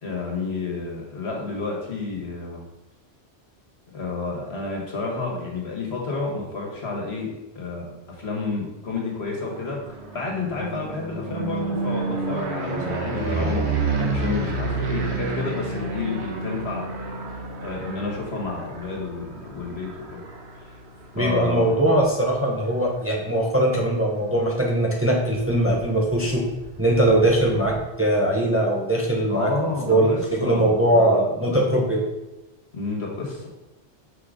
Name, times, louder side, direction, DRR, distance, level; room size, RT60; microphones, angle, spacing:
voice 1, 0.0-2.6 3.9-7.3 7.6-7.9 8.2-9.8 10.1-13.7 14.0-16.9 17.6-20.2 20.6-20.8 21.2-21.8 29.3-31.6 32.7-33.5, left 3 dB, 70° left, -1 dB, 1.7 m, -30 dB
sound 1, 9.1-23.1 23.6-24.0 24.3-24.4 24.7-27.8, right 3 dB, 80° right, 1.3 m, -30 dB
voice 2, 21.1-26.4 26.8-32.0, right 1 dB, 15° right, -2 dB, 0.8 m, -21 dB
5.9 x 3.9 x 4.9 m, 1.0 s
omnidirectional pair, 1.1 m